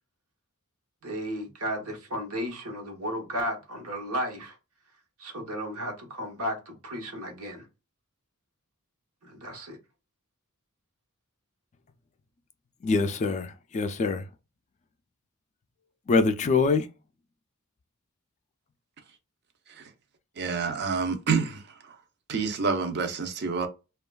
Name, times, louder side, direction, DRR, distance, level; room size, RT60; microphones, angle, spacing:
voice 1, 1.0-4.6 5.2-7.7 9.2-9.8, equal, 80° right, 1.0 m, -34 dB
voice 2, 12.8-14.3 16.1-16.9, left 4 dB, 35° left, 0.3 m, -24 dB
voice 3, 20.4-21.6 22.3-23.7, right 5 dB, 50° right, 0.6 m, -27 dB
3.0 x 2.3 x 2.2 m
head